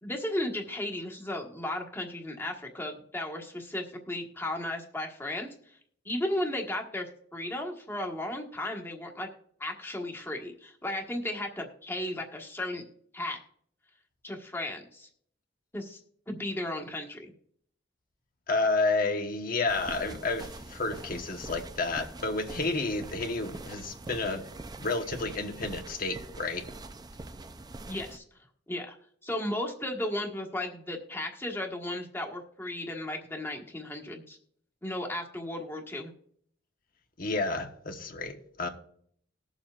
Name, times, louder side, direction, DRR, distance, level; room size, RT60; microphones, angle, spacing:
voice 1, 0.0-5.8 6.0-7.1 7.3-9.3 9.6-12.8 13.1-13.4 14.2-15.1 15.7-16.0 16.3-17.3 27.9-28.2 28.7-29.0 29.2-34.4 34.8-36.1, left 1 dB, 15° left, 1 dB, 1.4 m, -35 dB
voice 2, 18.5-24.5 24.8-26.6 37.2-38.7, left 3 dB, 50° left, 4 dB, 1.2 m, -30 dB
sound 1, 19.7-28.2, right 2 dB, 20° right, 0.5 m, -44 dB
20.0 x 7.1 x 2.5 m, 0.64 s
head